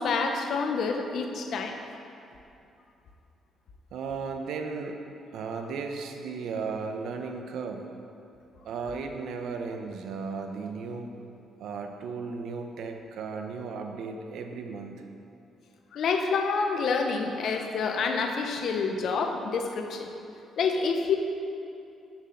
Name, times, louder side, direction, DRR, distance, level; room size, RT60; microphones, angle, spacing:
voice 1, 0.0-1.8 15.9-20.1 20.6-21.2, left 4 dB, 65° left, 4 dB, 1.0 m, -28 dB
voice 2, 3.9-5.0 5.3-7.9 8.6-11.1 11.6-15.0, right 5 dB, 75° right, 4 dB, 0.9 m, -35 dB
7.6 x 7.2 x 6.5 m, 2.7 s
cardioid pair, 90°, 0 cm